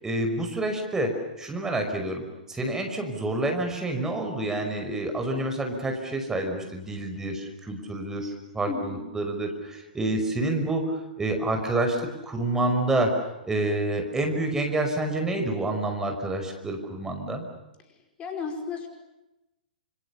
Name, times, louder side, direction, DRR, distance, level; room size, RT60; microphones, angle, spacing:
voice 1, 0.0-1.1 1.4-13.2 13.4-17.4, right 2 dB, 10° right, 4 dB, 5.7 m, -28 dB
voice 2, 8.7-9.1 18.2-18.9, left 5 dB, 25° left, 4 dB, 5.3 m, -33 dB
29.0 x 28.0 x 7.2 m, 0.95 s
figure-of-eight pair, 110°, 5 cm